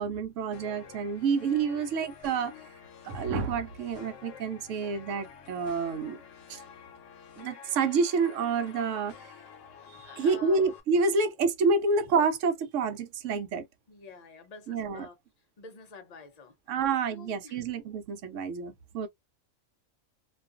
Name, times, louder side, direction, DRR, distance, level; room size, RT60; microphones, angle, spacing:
voice 1, 0.0-2.5 3.0-6.2 6.5-6.6 7.4-9.1 10.2-13.7 14.7-15.1 16.7-19.1, right 4 dB, 75° right, 0.9 m, -28 dB
sound 1, 0.5-10.8, left 7 dB, 70° left, 1.0 m, -49 dB
voice 2, 10.0-10.6 13.9-15.2 15.6-16.8 17.1-17.6 18.9-19.1, left 4 dB, 45° left, 0.5 m, -48 dB
2.4 x 2.4 x 2.4 m
omnidirectional pair, 1.3 m